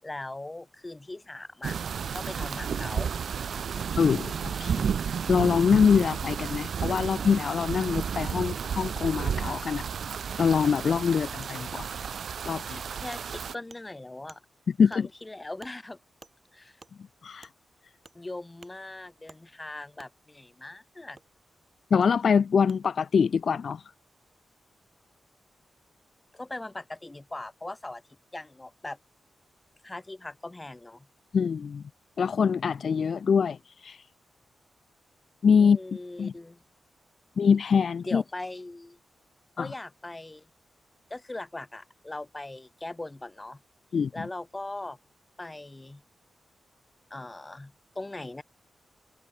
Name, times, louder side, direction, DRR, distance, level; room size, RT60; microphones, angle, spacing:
voice 1, 0.0-1.8 2.1-3.1 12.9-14.4 14.9-16.0 16.5-16.8 18.1-21.2 26.3-28.0 28.3-29.0 29.8-31.1 35.6-36.6 38.0-39.0 39.6-40.5 41.1-43.6 44.1-45.0 45.4-46.0 47.1-48.4, left 2 dB, 15° left, 7.8 m, -40 dB
sound 1, 1.6-13.5, right 7 dB, 65° right, 2.6 m, -32 dB
voice 2, 4.0-4.9 5.3-9.8 10.4-12.0 12.4-12.8 14.8-15.1 17.2-17.5 21.9-23.8 31.3-31.8 32.2-34.0 35.4-35.8 36.2-36.3 37.4-38.2 39.6-39.7 43.9-44.1, left 6 dB, 55° left, 0.4 m, -24 dB
Wood, 9.5-9.6 10.2-10.3 10.8-10.9 11.4-11.5 12.0-12.1 12.5-12.7 13.1-13.3 13.7-13.8 14.3-14.4 14.9-15.0 15.6-15.7 16.2-16.3 16.8-16.9 17.4-17.5 18.0-18.2 18.6-18.7 19.3-19.4 20.0-20.1 21.2-21.3 22.0-22.1 22.7-22.8, right 4 dB, 30° right, 5.0 m, -51 dB
wide cardioid pair, 135°, 0 cm